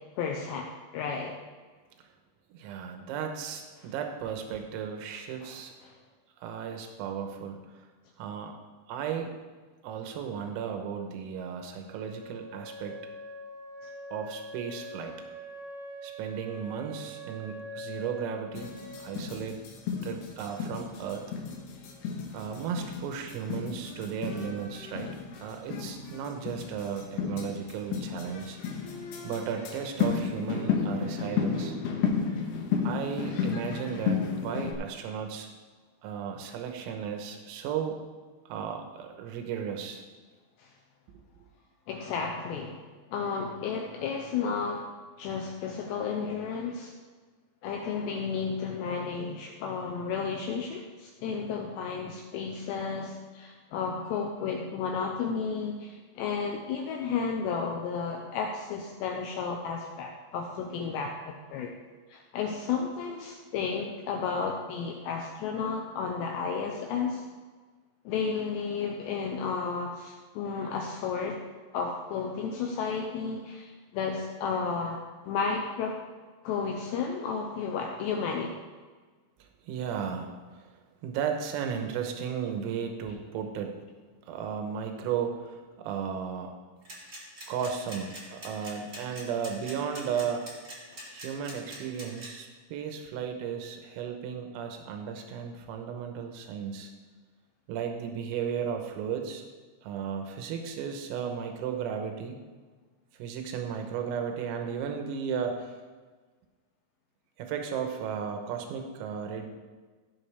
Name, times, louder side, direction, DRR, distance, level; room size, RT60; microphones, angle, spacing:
voice 1, 0.2-1.4 5.4-5.9 40.6-40.7 41.9-44.9 45.2-46.9 47.6-61.7 62.1-67.2 68.1-71.4 71.7-76.0 76.4-78.5, left 5 dB, 90° left, 1 dB, 2.5 m, -33 dB
voice 2, 2.5-5.7 6.4-7.6 8.2-8.6 8.9-9.3 9.8-13.0 14.1-15.1 16.0-18.7 19.0-19.6 20.0-21.2 22.3-25.1 25.4-28.6 29.2-31.8 32.8-35.5 36.0-38.0 38.5-40.0 79.7-80.7 81.0-83.8 84.3-86.6 87.5-90.5 91.1-96.9 97.7-99.4 99.8-102.4 103.2-105.8 107.4-109.5, right 7 dB, 85° right, 4 dB, 3.7 m, -35 dB
Wind instrument woodwind instrument, 11.9-19.6, equal, 70° right, 1.2 m, -43 dB
sound 1, 18.5-34.7, left 6 dB, 70° left, 2.8 m, -33 dB
sound 2, 86.8-92.3, right 1 dB, 25° right, 1.5 m, -43 dB
16.0 x 7.4 x 3.4 m, 1.4 s
omnidirectional pair, 6.0 m